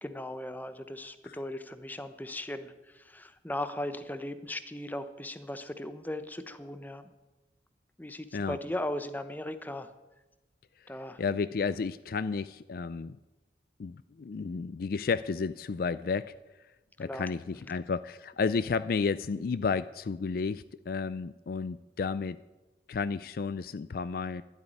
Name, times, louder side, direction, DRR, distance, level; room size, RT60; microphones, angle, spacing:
voice 1, 0.0-7.1 8.0-9.9 10.9-11.2 17.0-17.8, left 1 dB, 10° left, 11 dB, 0.8 m, -38 dB
voice 2, 11.2-13.2 13.8-16.3 17.0-22.4 22.9-24.4, left 5 dB, 55° left, 15 dB, 0.4 m, -32 dB
12.0 x 8.3 x 9.8 m, 1.1 s
head